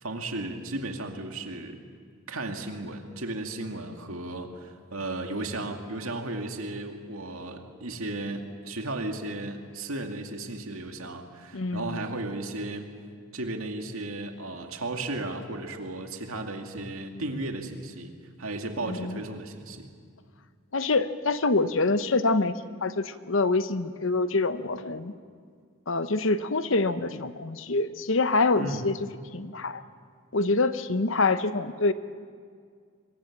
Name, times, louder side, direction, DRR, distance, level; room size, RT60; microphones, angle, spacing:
voice 1, 0.0-1.8 2.3-12.9 13.3-18.1 18.4-19.9 28.6-28.8, right 2 dB, 85° right, 4 dB, 2.2 m, -35 dB
voice 2, 11.5-12.0 18.9-19.2 20.7-25.1 25.9-29.0 29.3-29.8 30.3-31.9, left 3 dB, 65° left, 12 dB, 0.9 m, -26 dB
24.5 x 22.0 x 7.3 m, 2.1 s
head